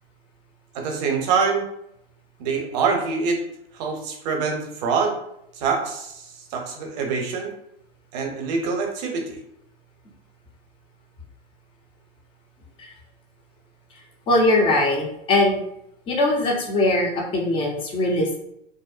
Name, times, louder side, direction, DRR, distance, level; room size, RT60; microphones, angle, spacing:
voice 1, 0.7-1.7 2.4-3.4 3.7-5.2 5.5-7.5 8.1-9.4, right 5 dB, 45° right, 2 dB, 0.6 m, -25 dB
voice 2, 14.3-15.6 16.1-18.4, left 2 dB, 15° left, 0 dB, 0.4 m, -21 dB
2.6 x 2.0 x 2.3 m, 0.76 s
figure-of-eight pair, 100°, 31 cm